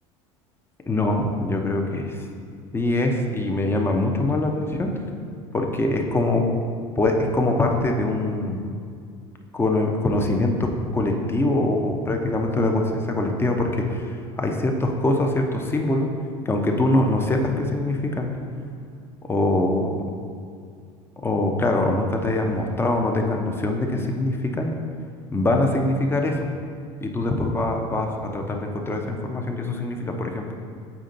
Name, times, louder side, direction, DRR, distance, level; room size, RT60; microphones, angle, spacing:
voice 1, 0.9-2.2 2.7-5.0 5.5-6.5 7.0-8.6 9.5-16.1 16.4-18.3 19.3-19.9 21.2-24.7 25.3-26.5 27.0-30.5, left 2 dB, 15° left, 2 dB, 0.8 m, -23 dB
7.2 x 5.0 x 3.9 m, 2.2 s
hypercardioid pair, 90°, 16 cm